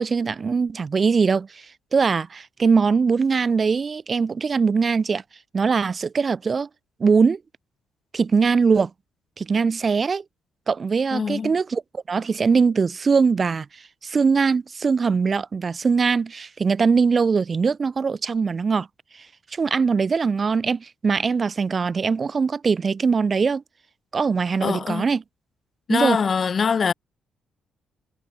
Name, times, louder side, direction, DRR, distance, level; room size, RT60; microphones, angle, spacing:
voice 1, 0.0-1.6 1.9-5.2 5.5-6.7 7.0-7.4 8.1-8.9 9.4-10.2 10.7-13.7 14.0-18.9 19.5-23.6 24.1-25.2 25.9-26.2, right 5 dB, 35° right, 6.3 m, -21 dB
voice 2, 11.1-11.5 24.6-25.1 25.9-26.9, left 6 dB, 45° left, 5.6 m, -23 dB
cardioid pair, 90°, 0 cm